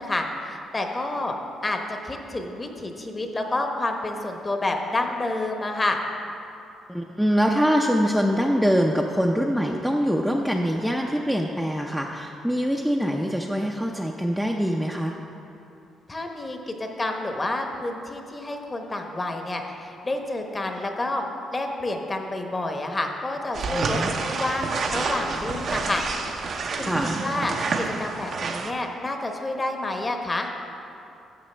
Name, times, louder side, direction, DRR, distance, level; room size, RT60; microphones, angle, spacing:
voice 1, 0.0-1.4 1.6-6.0 16.1-21.2 21.5-26.0 26.7-26.9 27.2-30.5, left 2 dB, 25° left, 3 dB, 0.9 m, -29 dB
voice 2, 6.9-15.1 23.7-24.1 26.8-27.2, equal, ahead, 0 dB, 0.5 m, -24 dB
sound 1, 23.5-28.7, right 4 dB, 55° right, 0.6 m, -28 dB
11.0 x 6.9 x 3.3 m, 2.8 s
cardioid pair, 90°, 0 cm